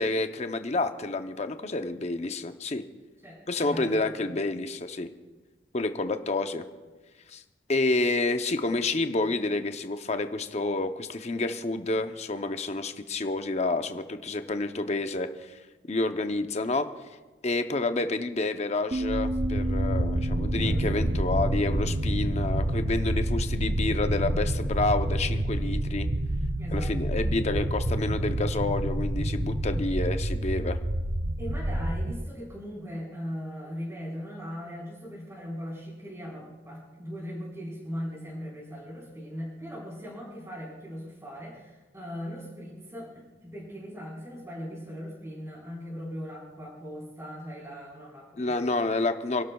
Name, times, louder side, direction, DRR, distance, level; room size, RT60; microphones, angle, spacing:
voice 1, 0.0-2.8 3.5-5.1 5.7-6.6 7.3-7.4 7.7-15.6 15.9-16.9 17.4-26.1 26.7-30.8 48.4-49.4, left 2 dB, 40° left, 8 dB, 0.7 m, -29 dB
voice 2, 3.2-4.4 20.6-21.2 26.6-26.9 31.4-48.9, equal, 15° right, -6 dB, 4.5 m, -39 dB
sound 1, 18.9-24.0, right 1 dB, 35° right, 0.6 m, -36 dB
sound 2, 19.0-32.2, right 1 dB, 80° right, 0.9 m, -28 dB
29.0 x 11.5 x 2.3 m, 1.2 s
head